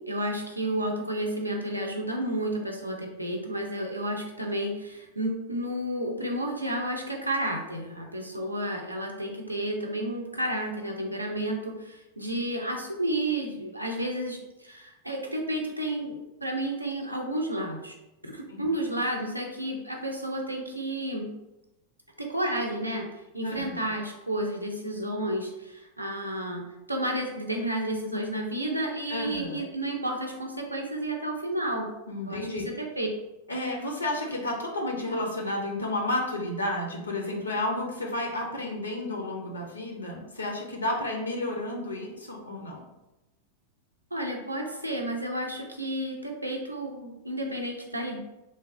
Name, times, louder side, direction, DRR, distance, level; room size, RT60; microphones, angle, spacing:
voice 1, 0.1-17.9 18.2-21.3 22.2-23.1 23.3-26.6 26.9-31.9 32.3-33.1 44.1-48.2, right 1 dB, 85° right, 1 dB, 0.5 m, -31 dB
voice 2, 23.4-23.8 29.1-29.6 32.1-32.6 33.5-42.8, left 1 dB, 80° left, 0 dB, 0.5 m, -31 dB
3.0 x 2.1 x 2.5 m, 0.97 s
figure-of-eight pair, 90°, 0 cm